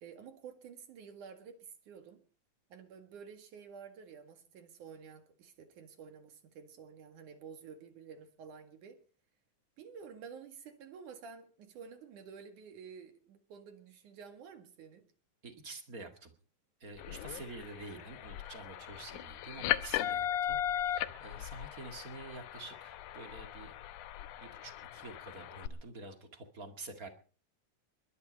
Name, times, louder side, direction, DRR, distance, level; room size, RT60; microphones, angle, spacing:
voice 1, 0.0-2.2 2.7-9.0 9.8-15.1, right 6 dB, 65° right, 8 dB, 3.2 m, -51 dB
voice 2, 15.4-16.3 16.8-23.8 24.4-27.1, right 3 dB, 30° right, 7 dB, 2.0 m, -48 dB
sound 1, 17.0-25.7, left 11 dB, 70° left, 2.3 m, -38 dB
22.0 x 11.5 x 5.3 m, 0.39 s
omnidirectional pair, 3.9 m